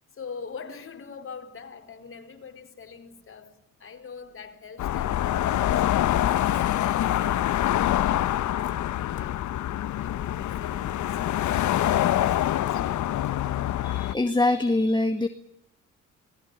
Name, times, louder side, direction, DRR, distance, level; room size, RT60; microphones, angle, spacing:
voice 1, 0.1-9.4 10.0-13.0, left 5 dB, 45° left, 5 dB, 4.4 m, -44 dB
sound 1, 4.8-14.1, left 12 dB, 70° left, 1.1 m, -25 dB
voice 2, 13.8-15.3, left 2 dB, 15° left, 6 dB, 2.0 m, -24 dB
28.0 x 20.0 x 8.3 m, 0.78 s
cardioid pair, 90°, 30 cm